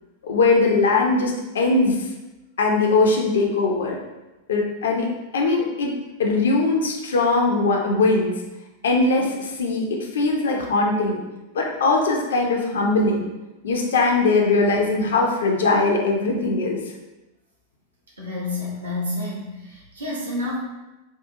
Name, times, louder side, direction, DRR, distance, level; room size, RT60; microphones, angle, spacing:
voice 1, 0.2-2.1 2.6-4.0 4.5-5.1 5.3-5.9 6.2-8.3 8.8-11.2 11.5-13.3 13.6-16.8, left 3 dB, 65° left, 0 dB, 0.4 m, -20 dB
voice 2, 18.2-20.6, left 2 dB, 75° right, -4 dB, 0.9 m, -29 dB
3.6 x 2.3 x 2.6 m, 1.0 s
figure-of-eight pair, 90°, 0 cm